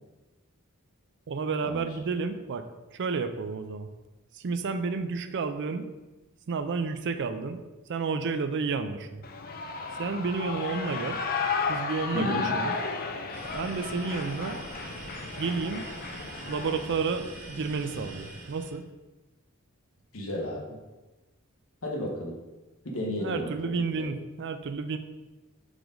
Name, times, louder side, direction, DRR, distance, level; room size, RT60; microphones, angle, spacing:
voice 1, 1.3-2.7 2.9-3.9 4.3-5.9 6.5-7.6 7.9-9.2 10.0-11.2 11.7-12.8 13.5-14.6 15.4-15.8 16.5-18.9 23.2-25.0, right 4 dB, 55° right, 10 dB, 0.4 m, -31 dB
Shout / Cheering, 9.2-17.0, left 5 dB, 40° left, 0.5 m, -33 dB
voice 2, 12.1-12.5 20.1-20.6 21.8-22.4 22.8-23.8, left 1 dB, 65° left, -1 dB, 1.3 m, -32 dB
sound 1, 13.3-18.8, right 2 dB, 80° right, 1.4 m, -43 dB
4.8 x 3.9 x 5.0 m, 1.1 s
head